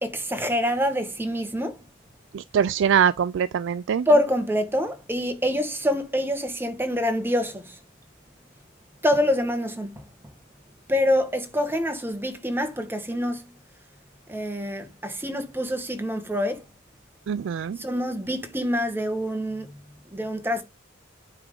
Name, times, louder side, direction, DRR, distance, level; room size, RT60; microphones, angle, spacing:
voice 1, 0.0-1.8 4.1-7.8 9.0-10.0 10.9-13.5 14.3-16.7 17.8-19.7 20.1-20.6, equal, 10° right, 1.3 m, -26 dB
voice 2, 2.3-4.1 17.3-17.8, right 8 dB, 65° right, 0.3 m, -23 dB
9.1 x 3.5 x 5.2 m
head